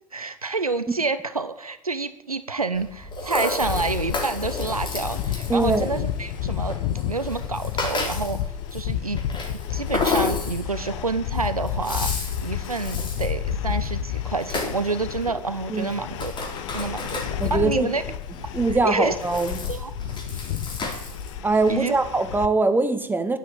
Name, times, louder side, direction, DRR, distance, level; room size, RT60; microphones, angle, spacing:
voice 1, 0.1-6.7 7.0-8.4 8.7-9.2 9.7-16.3 16.7-18.0 18.8-19.1 19.7-19.9 20.3-20.4 21.7-22.0, right 3 dB, 90° right, 12 dB, 0.8 m, -28 dB
Rattle (instrument), 2.7-21.7, left 3 dB, 25° left, 3.8 m, -33 dB
sound 1, 3.6-22.5, left 10 dB, 55° left, 0.8 m, -31 dB
voice 2, 5.5-6.0 15.7-15.9 17.4-17.9 18.5-19.6 21.4-23.4, right 3 dB, 10° right, 8 dB, 1.7 m, -22 dB
10.5 x 9.9 x 8.7 m, 0.76 s
figure-of-eight pair, 75°, 18 cm